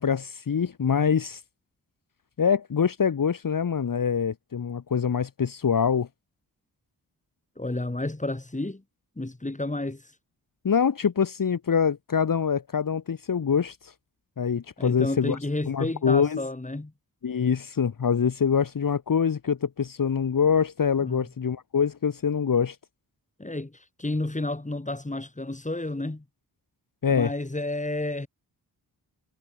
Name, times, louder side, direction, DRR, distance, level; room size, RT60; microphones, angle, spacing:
voice 1, 0.0-1.4 2.4-6.1 10.6-13.9 14.4-15.4 15.7-16.4 17.2-22.8 27.0-27.3, left 7 dB, 55° left, 1.7 m, -24 dB
voice 2, 7.6-8.8 9.2-10.0 14.8-16.9 21.0-21.3 23.4-26.2 27.1-28.3, left 2 dB, 20° left, 4.8 m, -31 dB
cardioid pair, 50°, 39 cm